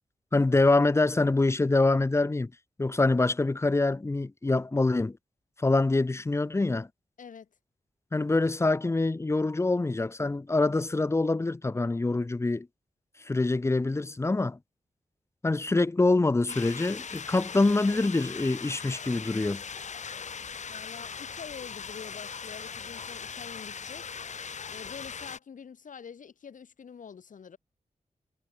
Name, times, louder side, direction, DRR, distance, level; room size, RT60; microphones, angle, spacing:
voice 1, 0.3-2.5 2.8-5.2 5.6-6.9 8.1-12.7 13.3-14.6 15.4-19.6, left 2 dB, 20° left, 0.9 m, -25 dB
voice 2, 7.2-7.5 20.7-24.1 24.7-27.6, left 7 dB, 80° left, 2.4 m, -46 dB
sound 1, 16.5-25.4, left 6 dB, 65° left, 1.8 m, -40 dB
wide cardioid pair, 155°, 13 cm